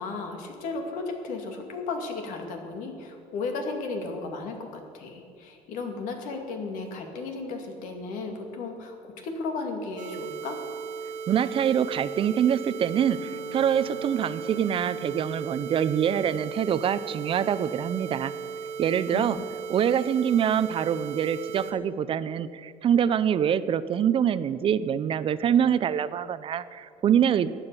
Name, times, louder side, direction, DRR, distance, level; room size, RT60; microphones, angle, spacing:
voice 1, 0.0-10.6 19.1-19.4, left 3 dB, 75° left, 4 dB, 2.4 m, -34 dB
sound 1, 10.0-21.7, right 6 dB, 70° right, 1.6 m, -37 dB
voice 2, 11.3-18.3 18.8-19.4 19.7-27.5, right 9 dB, 40° right, 15 dB, 0.6 m, -25 dB
Bowed string instrument, 12.7-15.8, left 4 dB, 55° left, 2.8 m, -48 dB
16.0 x 10.0 x 6.9 m, 2.3 s
cardioid pair, 120°, 14 cm